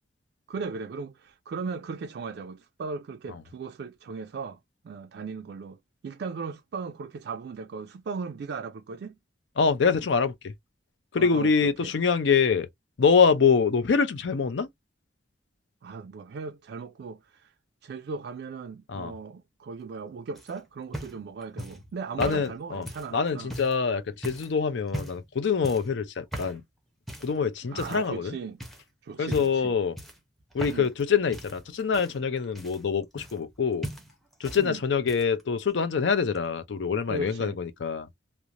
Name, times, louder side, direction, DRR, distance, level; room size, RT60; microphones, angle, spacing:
voice 1, 0.5-4.6 4.8-5.8 6.0-9.2 11.2-11.9 15.8-17.5 17.8-23.5 27.7-28.6 29.0-29.7 30.7-30.9 34.6-34.8 37.1-37.6, right 4 dB, 60° right, 0.3 m, -37 dB
voice 2, 9.6-10.5 11.1-12.7 13.0-14.7 18.9-19.1 22.2-22.9 23.1-26.6 27.2-28.4 29.2-30.0 30.5-33.9 34.4-38.1, left 5 dB, 70° left, 0.5 m, -25 dB
sound 1, 20.3-23.8 24.2-24.5 24.9-25.3 25.6-25.9 26.3-26.6 27.1-27.4 27.8-28.3 28.6-28.8 29.2-29.7 30.0-31.0 31.3-33.6 33.8-34.6 34.9-35.4 36.3-36.4, equal, ahead, 0.6 m, -38 dB
3.0 x 2.0 x 2.4 m
head